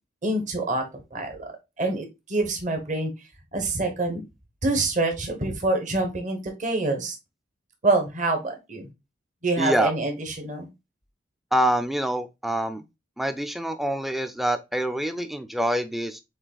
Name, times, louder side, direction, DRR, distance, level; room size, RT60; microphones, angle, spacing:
voice 1, 0.2-0.8 1.1-3.1 3.5-4.2 4.6-7.1 7.8-8.9 9.4-10.7, right 2 dB, 40° right, 1.2 m, -26 dB
voice 2, 9.6-9.9 11.5-12.8 13.2-16.2, right 1 dB, ahead, 0.4 m, -26 dB
7.2 x 3.2 x 2.3 m
head